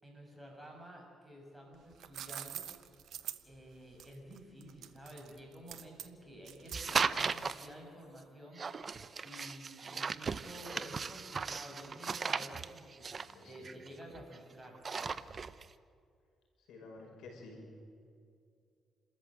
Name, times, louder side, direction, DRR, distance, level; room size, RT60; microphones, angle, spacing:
voice 1, 0.0-2.6 3.5-8.9 9.2-13.1 13.4-14.8, equal, 5° right, -1 dB, 7.0 m, -51 dB
sound 1, 1.7-7.7, right 10 dB, 70° right, 1.0 m, -46 dB
sound 2, 6.7-7.7 8.6-14.4 14.7-15.7, right 5 dB, 40° right, 0.7 m, -37 dB
voice 2, 13.2-13.7 16.7-17.6, left 3 dB, 75° left, 1 dB, 5.5 m, -51 dB
28.5 x 14.0 x 7.8 m, 2.3 s
cardioid pair, 90°, 0 cm